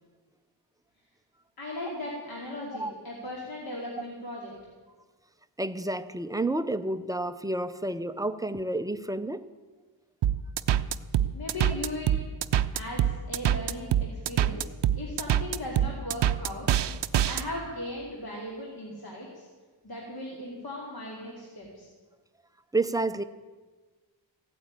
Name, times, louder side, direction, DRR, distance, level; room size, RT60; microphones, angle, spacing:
voice 1, 1.6-4.5 11.3-12.1 12.7-16.7 17.3-19.5 19.8-21.9, left 1 dB, 50° left, -3 dB, 2.7 m, -38 dB
voice 2, 5.6-9.4 22.7-23.2, right 2 dB, 10° right, 10 dB, 0.4 m, -30 dB
sound 1, 10.2-17.4, right 11 dB, 65° right, 0.6 m, -25 dB
15.5 x 9.3 x 8.8 m, 1.4 s
wide cardioid pair, 165°, 46 cm